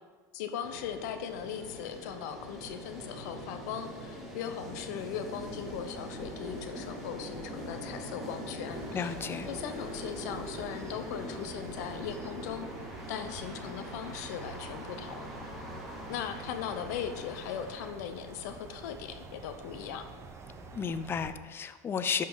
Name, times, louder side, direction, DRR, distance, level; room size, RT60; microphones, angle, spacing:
voice 1, 0.3-9.1 9.5-12.7 13.1-15.3 16.1-20.1, left 8 dB, 70° left, 8 dB, 0.9 m, -39 dB
sound 1, 0.6-17.9, equal, ahead, 2.2 m, -42 dB
sound 2, 8.7-21.3, right 4 dB, 30° right, 1.0 m, -49 dB
voice 2, 8.9-9.5 20.7-22.2, left 6 dB, 25° left, 11 dB, 0.5 m, -33 dB
12.0 x 5.4 x 4.0 m, 1.5 s
supercardioid pair, 110°, 10 cm